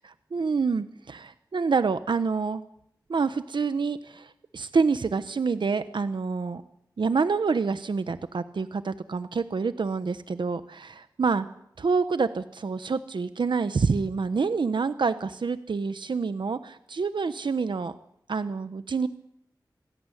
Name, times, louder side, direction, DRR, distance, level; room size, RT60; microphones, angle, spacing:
voice 1, 0.3-2.6 3.1-6.6 7.0-11.4 11.8-17.9 18.3-19.1, right 4 dB, 80° right, 11 dB, 1.0 m, -27 dB
26.0 x 17.0 x 10.0 m, 0.75 s
wide cardioid pair, 55°, 8 cm